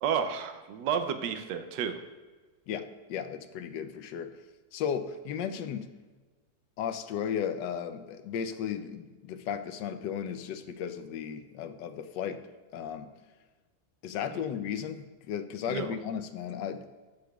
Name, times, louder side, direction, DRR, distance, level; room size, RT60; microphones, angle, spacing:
voice 1, 0.0-2.0 15.7-15.9, right 7 dB, 85° right, 8 dB, 1.3 m, -31 dB
voice 2, 2.7-4.3 4.7-5.9 6.8-12.4 12.7-13.1 14.0-17.0, left 8 dB, 85° left, 9 dB, 1.3 m, -35 dB
15.0 x 6.5 x 2.3 m, 1.3 s
omnidirectional pair, 1.9 m